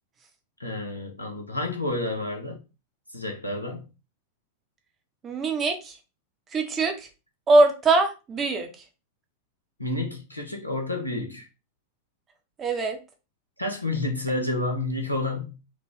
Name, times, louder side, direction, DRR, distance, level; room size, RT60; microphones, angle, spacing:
voice 1, 0.6-2.6 3.1-3.9 9.8-11.5 13.6-15.6, left 2 dB, 85° left, 0.9 m, -30 dB
voice 2, 5.2-6.0 6.5-6.9 7.5-8.7 12.6-13.0, right 2 dB, 25° right, 0.8 m, -22 dB
3.6 x 2.3 x 3.4 m
figure-of-eight pair, 90°, 0 cm